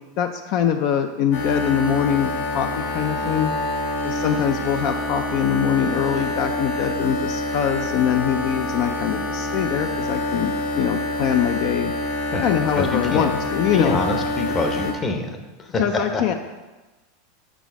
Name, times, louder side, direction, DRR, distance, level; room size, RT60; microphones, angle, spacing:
voice 1, 0.2-3.5 4.0-11.9 12.4-14.0 14.8-14.9 15.8-16.3, left 8 dB, 55° left, 7 dB, 0.4 m, -23 dB
sound 1, 1.3-14.9, left 1 dB, 75° left, 1.1 m, -27 dB
voice 2, 12.7-13.4 13.7-16.2, left 3 dB, 25° left, 5 dB, 0.8 m, -26 dB
6.1 x 4.0 x 4.7 m, 1.2 s
supercardioid pair, 120°, 0 cm